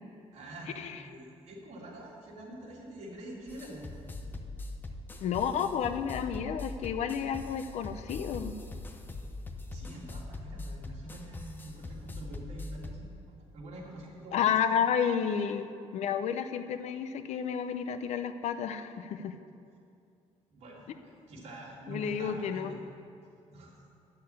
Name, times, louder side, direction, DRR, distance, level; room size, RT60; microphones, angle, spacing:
voice 1, 0.3-3.8 9.7-14.5 20.5-22.8 23.5-23.7, right 1 dB, 60° right, -3 dB, 2.7 m, -46 dB
sound 1, 3.5-13.0, left 2 dB, 15° left, 0.7 m, -42 dB
voice 2, 5.2-8.5 14.3-19.3 21.9-22.7, left 7 dB, 65° left, 10 dB, 0.6 m, -31 dB
10.5 x 6.6 x 8.6 m, 2.5 s
cardioid pair, 165°, 12 cm